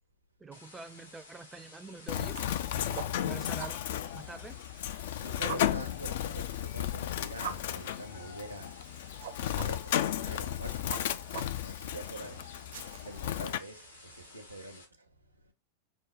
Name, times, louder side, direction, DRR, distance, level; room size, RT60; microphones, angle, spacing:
voice 1, 0.4-3.8 4.1-4.6, right 3 dB, 10° right, 0.5 m, -46 dB
sound 1, 0.5-14.8, left 2 dB, 75° left, 1.2 m, -54 dB
Bird, 2.1-13.6, left 11 dB, 55° left, 0.3 m, -34 dB
sound 2, 2.1-14.4, right 8 dB, 60° right, 0.6 m, -47 dB
voice 2, 5.0-8.7 9.0-11.3 11.6-15.1, right 2 dB, 90° right, 0.8 m, -46 dB
6.1 x 2.2 x 3.7 m
figure-of-eight pair, 90°, 0 cm